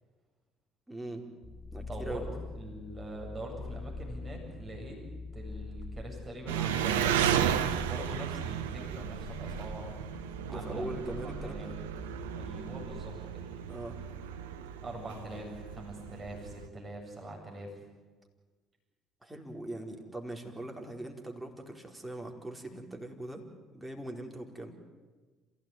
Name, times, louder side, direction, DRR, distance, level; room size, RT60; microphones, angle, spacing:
voice 1, 0.9-1.2 1.7-2.2 10.5-11.7 13.7-14.0 19.2-23.4 23.7-24.7, right 1 dB, 10° right, 2 dB, 4.7 m, -41 dB
sound 1, 1.4-13.0, left 2 dB, 20° left, 1.9 m, -45 dB
voice 2, 1.8-2.2 2.6-5.0 5.3-9.9 10.5-10.9 11.2-11.7 12.4-13.5 14.8-17.7, right 1 dB, 30° right, 0 dB, 7.7 m, -43 dB
Engine, 6.5-16.7, right 9 dB, 80° right, 1.0 m, -34 dB
27.5 x 16.5 x 9.5 m, 1.3 s
hypercardioid pair, 55°, 0 cm